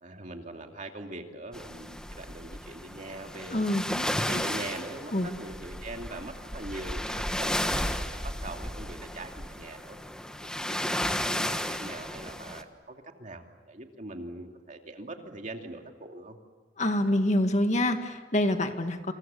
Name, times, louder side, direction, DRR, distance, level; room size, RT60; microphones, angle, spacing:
voice 1, 0.0-3.6 4.1-7.1 7.4-10.0 10.4-16.4, right 2 dB, 45° right, 4 dB, 2.7 m, -42 dB
sound 1, 1.5-12.6, equal, 5° left, 1.4 m, -33 dB
voice 2, 3.5-4.1 5.1-5.3 16.8-19.1, left 1 dB, 40° left, 6 dB, 2.0 m, -26 dB
28.5 x 27.5 x 7.1 m, 1.4 s
head